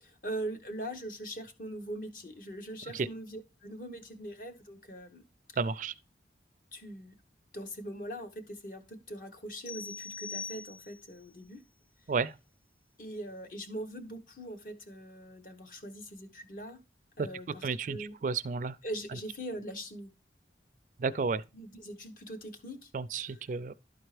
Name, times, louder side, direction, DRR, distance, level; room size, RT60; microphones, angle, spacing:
voice 1, 0.0-5.2 6.7-7.1 7.5-11.6 13.0-16.8 17.2-18.1 18.8-20.1 21.5-22.9 23.2-23.4, right 1 dB, 50° left, 1.1 m, -42 dB
voice 2, 5.6-5.9 12.1-12.3 17.6-18.8 21.0-21.4 22.9-23.7, right 4 dB, 45° right, 0.3 m, -32 dB
sound 1, 9.7-11.2, left 5 dB, 30° left, 0.7 m, -42 dB
11.5 x 4.4 x 3.2 m
head